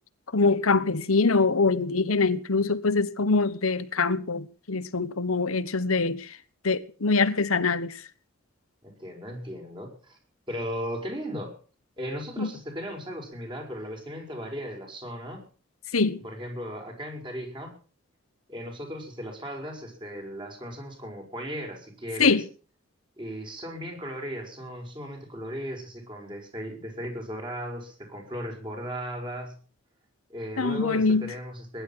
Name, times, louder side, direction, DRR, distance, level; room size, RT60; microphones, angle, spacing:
voice 1, 0.3-6.3 6.6-7.9 12.4-12.5 15.9-16.2 22.2-22.4 30.6-31.3, left 4 dB, 80° left, 1.2 m, -24 dB
voice 2, 8.8-10.2 10.5-11.5 12.0-15.4 16.2-17.7 18.5-22.4 23.2-29.5 30.3-31.8, equal, 20° right, 5.8 m, -36 dB
21.0 x 11.5 x 5.8 m
head